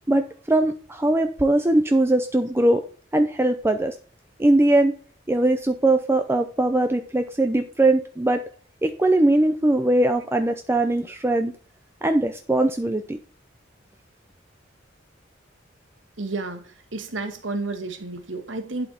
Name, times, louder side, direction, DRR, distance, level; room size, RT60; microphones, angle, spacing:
voice 1, 0.1-2.8 3.1-3.9 4.4-4.9 5.3-8.4 8.8-11.5 12.0-13.2, right 1 dB, 15° right, 0.5 m, -21 dB
voice 2, 16.2-18.9, right 3 dB, 80° right, 1.5 m, -31 dB
11.0 x 4.3 x 4.3 m
head